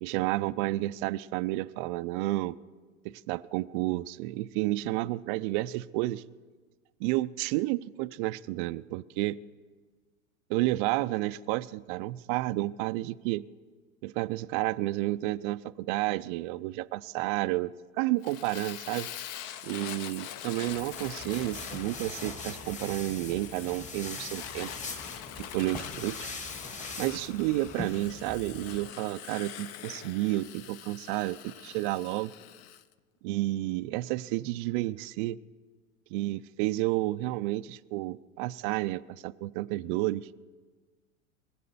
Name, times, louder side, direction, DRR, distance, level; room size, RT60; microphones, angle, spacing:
voice 1, 0.0-2.6 3.0-6.2 7.0-9.4 10.5-13.4 14.0-19.1 19.6-24.7 25.4-26.3 27.0-32.3 33.2-35.4 36.1-40.3, right 18 dB, 40° right, 14 dB, 0.4 m, -31 dB
Fire, 18.2-32.8, left 11 dB, 40° left, 0.7 m, -44 dB
sound 1, 20.7-28.9, left 3 dB, 15° left, 1.8 m, -42 dB
21.0 x 7.7 x 6.9 m, 1.4 s
hypercardioid pair, 105°, 41 cm